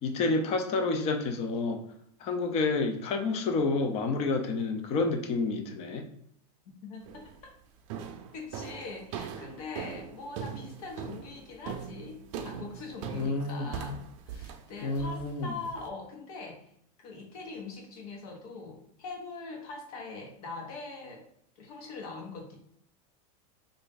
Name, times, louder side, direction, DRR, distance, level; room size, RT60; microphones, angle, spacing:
voice 1, 0.0-1.8 2.2-6.1 13.1-13.7 14.8-15.5, left 3 dB, 30° left, 5 dB, 0.5 m, -29 dB
voice 2, 6.8-7.3 8.3-16.7 17.0-21.3 21.6-22.6, left 3 dB, 70° left, 0 dB, 1.3 m, -42 dB
sound 1, 7.1-7.4 7.9-15.9, right 7 dB, 55° right, 0.5 m, -41 dB
3.3 x 2.6 x 3.8 m, 0.71 s
supercardioid pair, 150°, 20 cm